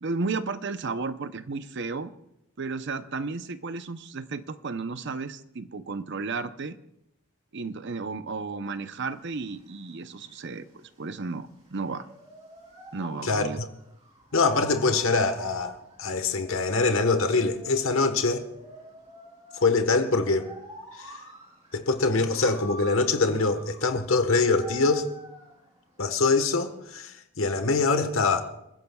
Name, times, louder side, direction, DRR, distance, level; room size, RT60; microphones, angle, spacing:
voice 1, 0.0-2.1 2.6-6.8 7.5-12.1 12.9-13.6, right 4 dB, 55° right, 0.7 m, -33 dB
sound 1, 8.9-26.9, right 1 dB, 30° right, 3.5 m, -47 dB
voice 2, 13.2-13.7 14.3-18.4 19.5-20.5 21.0-21.1 21.7-25.1 26.0-28.4, left 3 dB, 70° left, 1.3 m, -24 dB
29.5 x 15.0 x 2.3 m
head